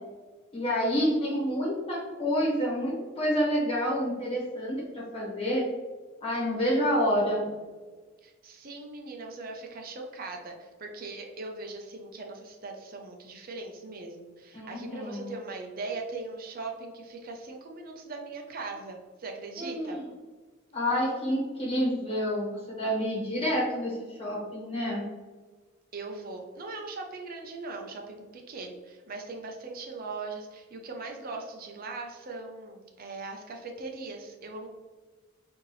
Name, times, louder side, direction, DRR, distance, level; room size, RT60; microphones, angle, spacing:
voice 1, 0.5-5.6 6.2-7.5 14.5-15.3 19.6-20.1 20.7-25.1, equal, 30° left, -5 dB, 1.3 m, -28 dB
voice 2, 8.2-20.0 25.9-34.7, right 3 dB, 45° right, 2 dB, 0.6 m, -40 dB
4.3 x 2.7 x 3.1 m, 1.4 s
head